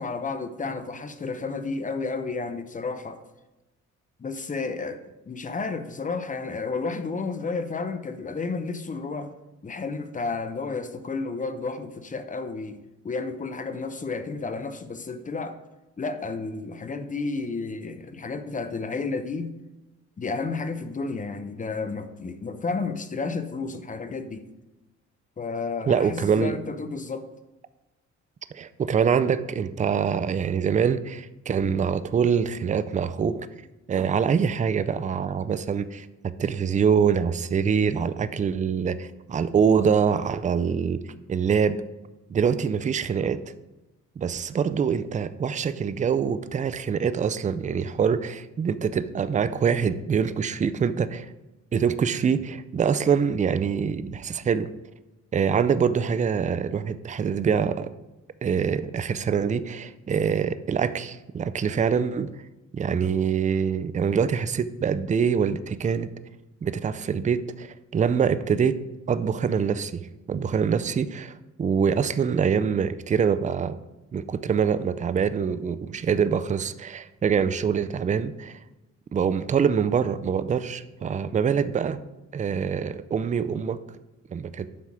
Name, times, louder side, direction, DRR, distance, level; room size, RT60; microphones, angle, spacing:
voice 1, 0.0-3.2 4.2-9.3 9.6-12.8 13.0-15.6 16.0-19.5 20.2-24.4 25.4-27.3, left 4 dB, 25° left, 10 dB, 0.7 m, -31 dB
voice 2, 25.9-26.5 28.5-33.5 33.9-41.0 41.3-41.8 42.3-43.4 44.2-51.3 51.7-54.7 55.3-57.9 58.4-62.3 62.7-66.1 66.6-68.8 69.1-73.8 74.1-78.6 79.1-82.0 82.3-83.8 84.3-84.7, right 7 dB, 25° right, 14 dB, 0.4 m, -24 dB
8.5 x 5.6 x 4.8 m, 1.1 s
cardioid pair, 105°, 30 cm